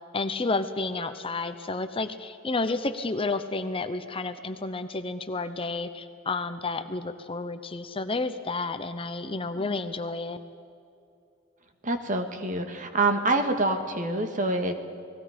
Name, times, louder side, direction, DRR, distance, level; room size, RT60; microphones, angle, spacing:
voice 1, 0.1-10.4, left 3 dB, 25° left, 10 dB, 0.8 m, -31 dB
voice 2, 11.8-14.7, right 2 dB, 40° right, 6 dB, 1.8 m, -26 dB
29.5 x 20.0 x 5.1 m, 2.6 s
head